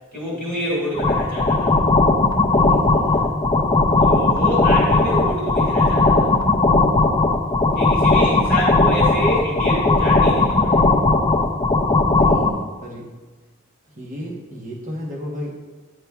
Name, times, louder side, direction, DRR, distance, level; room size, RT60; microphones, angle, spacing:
voice 1, 0.1-1.7 4.0-6.3 7.7-10.8, equal, 15° right, -8 dB, 2.0 m, -27 dB
sound 1, 0.9-12.5, left 3 dB, 20° left, 0.4 m, -17 dB
voice 2, 2.3-3.7 7.7-8.8 12.1-13.1 14.0-15.5, equal, 40° right, -2 dB, 1.0 m, -34 dB
9.5 x 4.9 x 2.3 m, 1.3 s
head